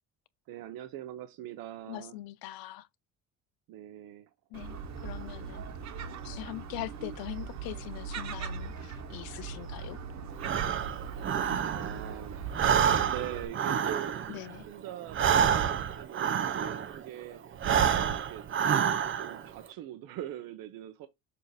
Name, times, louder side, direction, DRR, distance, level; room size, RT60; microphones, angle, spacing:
voice 1, 0.5-2.1 3.7-4.3 11.6-12.4 12.6-14.2 14.7-17.4 18.0-18.4 19.1-21.1, right 12 dB, 75° right, 0.8 m, -42 dB
voice 2, 1.9-2.9 4.5-4.8 5.0-5.6 6.2-10.0 14.3-14.7, left 16 dB, 85° left, 0.7 m, -42 dB
Gull seagull, 4.5-13.5, right 5 dB, 50° right, 1.2 m, -40 dB
Breathing, 10.4-12.1 12.4-17.0 17.5-19.4, right 8 dB, 35° right, 0.6 m, -28 dB
6.9 x 2.8 x 4.8 m
cardioid pair, 125°, 35 cm